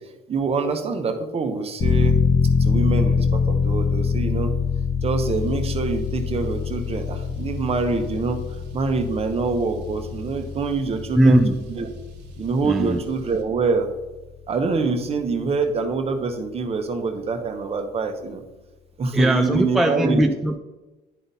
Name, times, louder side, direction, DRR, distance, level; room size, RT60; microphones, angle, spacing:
voice 1, 0.3-2.2 2.6-4.5 5.0-8.4 8.7-11.4 11.7-11.9 12.4-13.9 14.5-18.4 19.0-20.3, right 4 dB, 35° right, 6 dB, 1.0 m, -25 dB
sound 1, 1.8-14.3 14.7-14.8, left 5 dB, 40° left, 1.1 m, -24 dB
Car, 5.2-13.4, right 2 dB, 90° right, 1.2 m, -43 dB
voice 2, 11.1-11.6 12.6-13.0 19.1-20.6, right 1 dB, ahead, 5 dB, 0.4 m, -19 dB
10.0 x 3.9 x 4.1 m, 1.1 s
cardioid pair, 110°, 17 cm